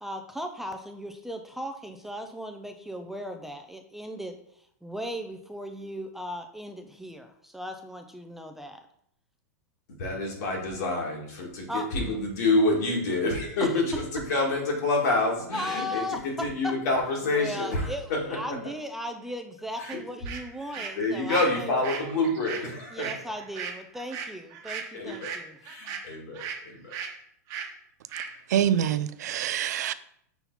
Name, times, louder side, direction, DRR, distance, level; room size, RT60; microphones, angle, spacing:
voice 1, 0.0-4.4 4.8-8.8 11.7-11.9 13.6-13.7 15.5-16.7 17.3-21.7 22.9-25.6, equal, 5° right, 0.5 m, -37 dB
voice 2, 10.0-18.6 19.8-20.0 20.6-23.1 24.9-25.3 25.6-26.9, left 2 dB, 70° left, 2.3 m, -28 dB
sound 1, 19.9-20.0 20.2-26.6 26.9-27.1 27.5-27.7 28.1-28.3, right 7 dB, 40° right, 1.1 m, -37 dB
voice 3, 28.5-29.9, right 10 dB, 75° right, 0.4 m, -25 dB
5.8 x 4.1 x 4.0 m
hypercardioid pair, 125°, 9 cm